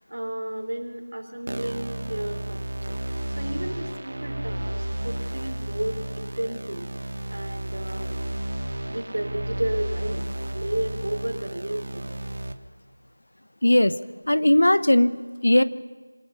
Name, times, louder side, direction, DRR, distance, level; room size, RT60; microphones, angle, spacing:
voice 1, 0.0-8.2 8.9-12.2, right 1 dB, 75° right, 3 dB, 4.1 m, -33 dB
sound 1, 1.5-12.5, right 1 dB, 55° right, 1.5 m, -32 dB
voice 2, 13.6-14.0 14.3-15.6, left 1 dB, 75° left, 14 dB, 1.0 m, -18 dB
26.0 x 19.0 x 5.6 m, 1.4 s
figure-of-eight pair, 175°, 0 cm